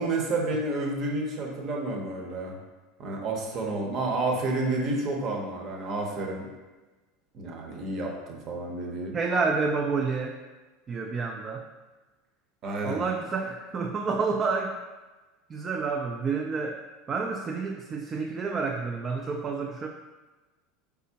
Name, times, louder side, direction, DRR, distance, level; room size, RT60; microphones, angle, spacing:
voice 1, 0.0-2.6 3.0-6.5 7.3-9.1 12.6-13.0, right 2 dB, 45° right, 0 dB, 0.8 m, -30 dB
voice 2, 9.1-10.4 10.9-11.7 12.8-14.8 15.5-16.8 17.1-19.9, right 4 dB, 30° right, 1 dB, 0.3 m, -29 dB
4.1 x 3.5 x 2.8 m, 1.2 s
supercardioid pair, 115°, 0 cm